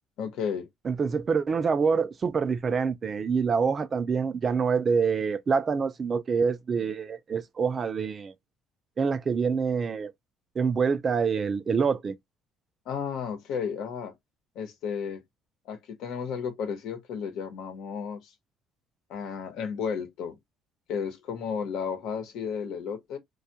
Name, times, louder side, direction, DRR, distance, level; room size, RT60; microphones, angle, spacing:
voice 1, 0.2-0.7 12.9-14.1 14.5-15.2 15.6-18.3 19.1-20.4 20.9-23.2, left 6 dB, 75° left, 0.9 m, -33 dB
voice 2, 0.8-8.3 9.0-10.1 10.6-12.1, right 5 dB, 30° right, 0.4 m, -26 dB
2.3 x 2.2 x 2.7 m
cardioid pair, 125°, 0 cm